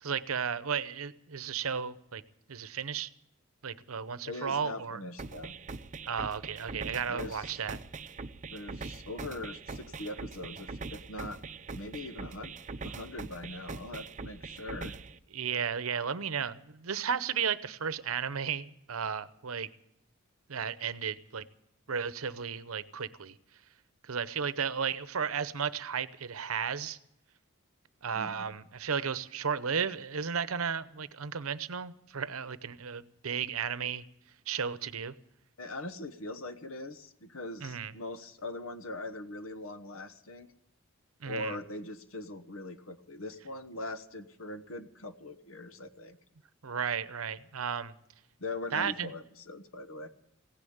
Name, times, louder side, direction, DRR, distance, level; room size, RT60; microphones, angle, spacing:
voice 1, 0.0-2.2 2.5-3.1 3.6-5.0 6.1-7.8 15.3-19.7 20.5-21.4 21.9-23.4 24.0-27.0 28.0-34.0 34.5-35.1 37.6-37.9 41.2-41.6 46.6-47.9 48.7-49.1, right 7 dB, 80° right, 0.8 m, -34 dB
voice 2, 4.2-5.5 7.1-7.6 8.5-11.4 11.7-12.5 12.8-15.0 28.1-28.5 35.6-40.5 41.2-46.2 48.4-50.1, left 2 dB, 70° left, 1.2 m, -41 dB
sound 1, 5.2-15.2, right 4 dB, 35° right, 0.6 m, -42 dB
16.5 x 10.0 x 8.7 m
head